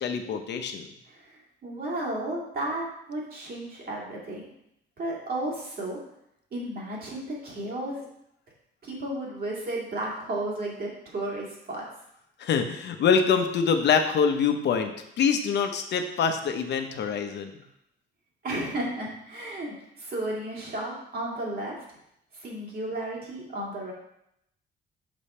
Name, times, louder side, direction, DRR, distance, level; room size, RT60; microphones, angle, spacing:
voice 1, 0.0-0.9 12.4-14.9 15.2-17.5, left 6 dB, 65° left, 7 dB, 0.8 m, -25 dB
voice 2, 1.1-4.4 5.0-6.0 6.5-8.1 8.8-11.8 18.4-21.8 22.3-23.9, right 1 dB, 50° right, -3 dB, 2.4 m, -33 dB
6.1 x 5.1 x 4.3 m, 0.78 s
cardioid pair, 120°, 19 cm